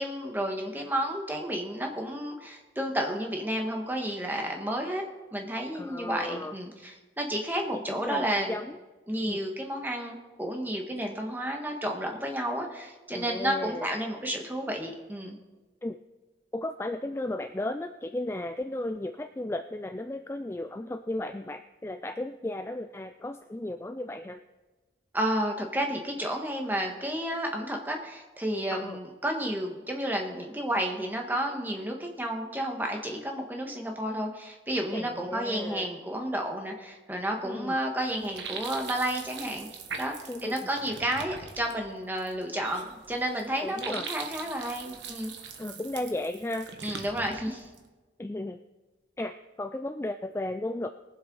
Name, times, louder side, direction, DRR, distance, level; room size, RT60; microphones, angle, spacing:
voice 1, 0.0-5.0 5.3-8.6 9.1-15.4 25.1-39.7 40.0-40.1 40.4-45.3 46.8-47.7, right 1 dB, 10° right, 2 dB, 1.5 m, -31 dB
voice 2, 5.7-6.6 7.7-8.8 9.3-9.4 13.1-13.9 15.8-16.0 16.5-24.4 28.7-29.0 34.9-35.9 37.4-37.7 40.3-40.7 43.6-44.1 45.6-46.7 48.2-48.6 49.2-50.9, left 1 dB, 15° left, 8 dB, 0.3 m, -35 dB
sound 1, 38.0-47.9, right 5 dB, 85° right, 1.4 m, -42 dB
21.0 x 7.7 x 4.0 m, 1.2 s
head